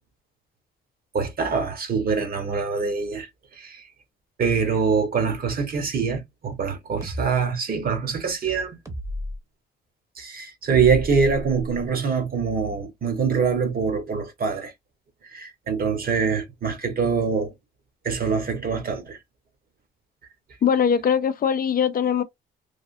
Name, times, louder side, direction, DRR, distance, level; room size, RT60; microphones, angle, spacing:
voice 1, 1.1-3.8 4.4-8.8 10.2-14.7 15.3-17.5 18.0-19.2, right 5 dB, 50° right, 1.1 m, -24 dB
Bass Kicks, 7.0-7.3 8.8-9.4 10.7-11.8, equal, 15° right, 0.9 m, -33 dB
voice 2, 20.6-22.2, left 7 dB, 45° left, 0.5 m, -21 dB
3.3 x 2.4 x 2.5 m
cardioid pair, 90°, 20 cm